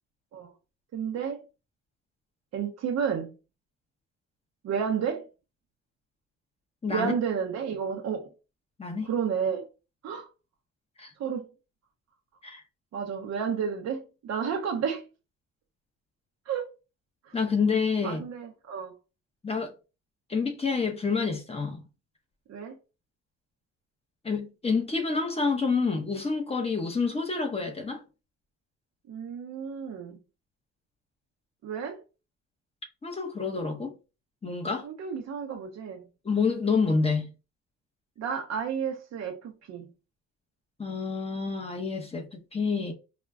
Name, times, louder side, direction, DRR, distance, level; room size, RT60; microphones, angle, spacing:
voice 1, 0.9-1.4 2.5-3.3 4.6-5.3 6.9-8.3 9.0-9.7 10.0-10.3 11.2-11.5 12.9-15.1 16.5-16.7 17.3-17.4 18.0-18.9 22.5-22.8 29.1-30.2 31.6-32.0 34.8-36.0 38.2-39.9, right 7 dB, 60° right, 0.6 m, -31 dB
voice 2, 6.8-7.1 8.8-9.1 11.0-11.1 12.4-12.6 17.3-18.2 19.4-19.7 20.3-21.8 24.2-28.0 33.0-33.9 34.4-34.9 36.2-37.3 40.8-42.3 42.5-42.9, left 4 dB, 20° left, 0.8 m, -28 dB
4.9 x 2.2 x 2.3 m
cardioid pair, 90°, 30 cm